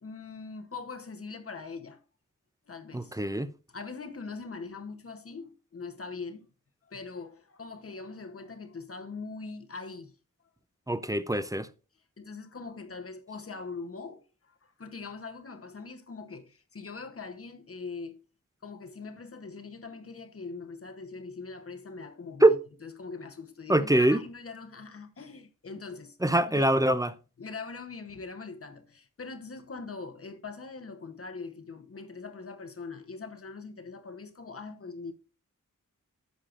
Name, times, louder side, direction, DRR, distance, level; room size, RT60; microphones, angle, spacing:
voice 1, 0.0-2.0 2.7-3.2 3.7-6.5 6.8-10.2 12.2-18.2 18.6-22.6 22.8-26.2 26.5-26.7 27.4-35.1, left 4 dB, 45° left, 0.9 m, -42 dB
voice 2, 2.9-3.5 10.9-11.7 22.4-22.6 23.7-24.2 26.2-27.1, right 1 dB, 10° right, 0.4 m, -23 dB
11.0 x 7.3 x 2.5 m
wide cardioid pair, 120°, 32 cm